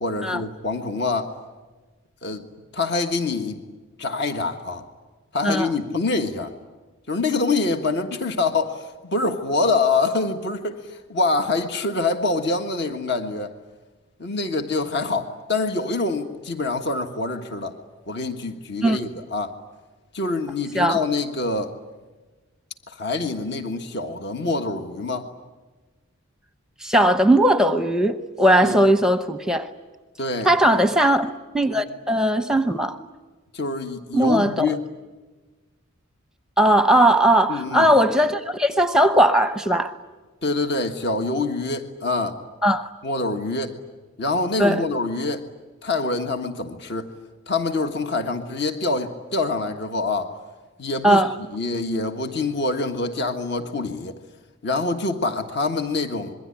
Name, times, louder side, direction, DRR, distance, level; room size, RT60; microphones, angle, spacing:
voice 1, 0.0-1.3 2.2-2.5 2.7-3.6 4.0-4.8 5.3-6.5 7.1-10.8 11.1-13.5 14.2-17.8 18.1-19.5 20.1-21.7 22.9-25.3 28.6-28.8 30.2-30.8 33.5-34.8 37.5-37.9 40.4-42.4 43.0-43.8 44.2-45.4 45.8-47.1 47.5-50.3 50.8-51.2 51.5-54.2 54.6-56.3, left 3 dB, 55° left, 1.6 m, -25 dB
voice 2, 26.8-29.7 30.4-33.0 34.1-34.7 36.6-39.9 42.6-42.9 44.6-44.8 51.0-51.3, right 1 dB, 5° right, 0.8 m, -18 dB
26.5 x 22.5 x 10.0 m
head